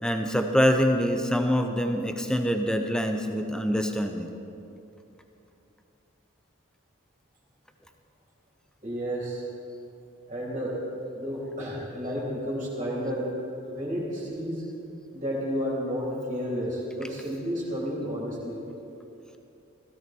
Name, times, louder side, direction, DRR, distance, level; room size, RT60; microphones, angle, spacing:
voice 1, 0.0-4.3, equal, 5° left, 5 dB, 0.8 m, -25 dB
voice 2, 8.8-9.4 10.3-10.8 11.1-13.3 13.7-14.6 15.1-18.6, equal, 30° right, -6 dB, 3.6 m, -31 dB
17.0 x 16.0 x 4.6 m, 2.8 s
head